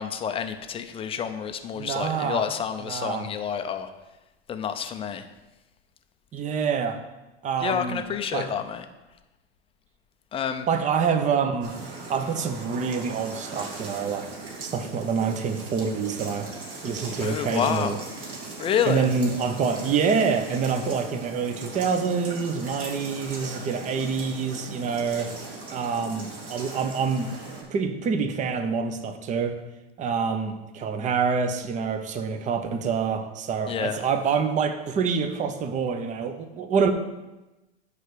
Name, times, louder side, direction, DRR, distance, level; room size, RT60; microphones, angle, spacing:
voice 1, 0.0-3.9 4.5-5.2 7.6-8.8 10.3-10.7 17.2-18.0 18.6-19.1 33.7-34.0, left 8 dB, 15° left, 7 dB, 0.5 m, -28 dB
voice 2, 1.7-2.4 2.9-3.3 6.3-7.0 7.4-8.0 8.3-8.6 10.7-11.8 12.1-14.3 14.6-16.5 16.8-18.0 18.9-25.3 25.7-27.3 27.7-29.5 30.0-36.9, right 5 dB, 20° right, 8 dB, 0.7 m, -26 dB
sound 1, 11.6-27.6, right 3 dB, 45° right, 2.8 m, -39 dB
9.8 x 3.3 x 6.7 m, 1.0 s
supercardioid pair, 125°, 33 cm